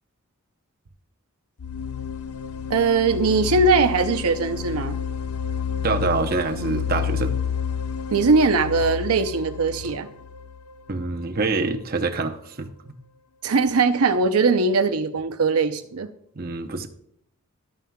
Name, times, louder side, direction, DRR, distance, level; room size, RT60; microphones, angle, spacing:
sound 1, 1.6-11.4, left 7 dB, 80° left, 0.5 m, -30 dB
voice 1, 2.7-5.0 8.1-10.1 13.4-16.1, right 4 dB, 85° right, 0.7 m, -20 dB
voice 2, 5.8-7.3 10.9-13.0 16.4-16.9, right 3 dB, 40° right, 0.8 m, -26 dB
12.0 x 9.2 x 2.3 m
head